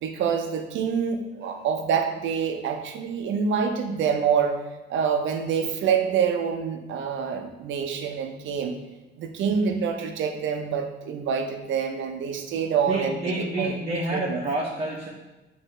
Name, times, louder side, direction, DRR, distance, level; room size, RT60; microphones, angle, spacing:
voice 1, 0.0-4.6 4.9-8.7 9.2-13.7 14.1-14.4, right 7 dB, 75° right, 5 dB, 0.6 m, -26 dB
voice 2, 12.9-15.1, right 1 dB, 30° right, -4 dB, 0.6 m, -29 dB
6.3 x 2.6 x 3.2 m, 1.1 s
cardioid pair, 90°, 20 cm